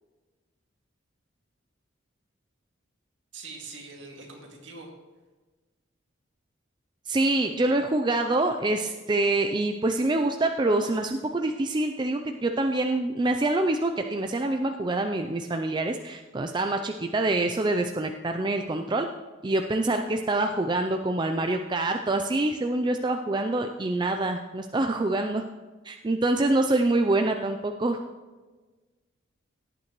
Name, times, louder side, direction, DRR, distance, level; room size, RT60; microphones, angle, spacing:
voice 1, 3.3-4.9, right 3 dB, 65° right, 0 dB, 2.2 m, -43 dB
voice 2, 7.1-19.1 19.4-25.4 25.9-28.0, right 2 dB, 20° right, 5 dB, 0.4 m, -26 dB
17.5 x 8.7 x 3.1 m, 1.3 s
head